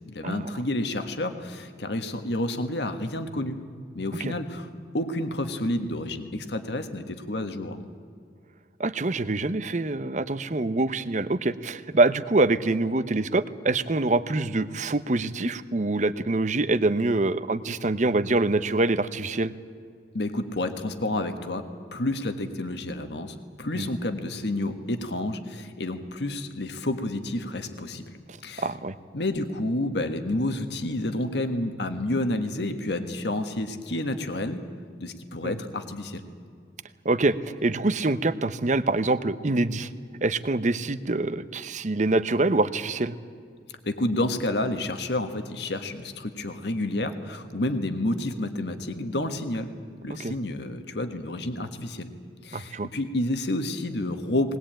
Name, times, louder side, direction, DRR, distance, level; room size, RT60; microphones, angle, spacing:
voice 1, 0.1-3.6 3.9-4.7 4.9-7.9 20.1-21.6 21.9-28.2 28.4-28.7 29.1-34.6 35.0-36.2 43.8-49.7 50.0-52.1 52.4-54.6, left 1 dB, 70° left, 7 dB, 1.5 m, -29 dB
voice 2, 8.8-19.5 23.8-23.9 28.6-28.9 35.4-35.6 37.0-39.9 40.2-43.1 50.2-50.4 52.5-52.9, right 2 dB, 40° right, 13 dB, 0.8 m, -25 dB
20.5 x 19.5 x 8.9 m, 2.2 s
head